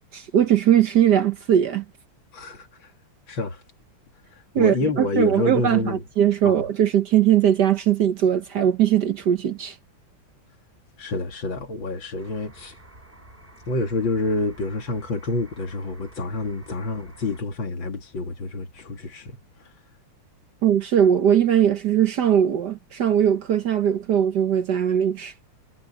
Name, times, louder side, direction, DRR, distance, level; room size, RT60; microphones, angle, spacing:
voice 1, 0.1-1.8 4.5-9.8 20.6-25.3, right 9 dB, 60° right, 1.4 m, -20 dB
voice 2, 2.3-2.7 3.3-3.6 4.6-6.0 6.4-6.6 11.0-12.7 13.7-19.4, left 2 dB, 65° left, 3.1 m, -28 dB
sound 1, 12.2-17.4, right 1 dB, 25° right, 4.9 m, -49 dB
omnidirectional pair, 2.3 m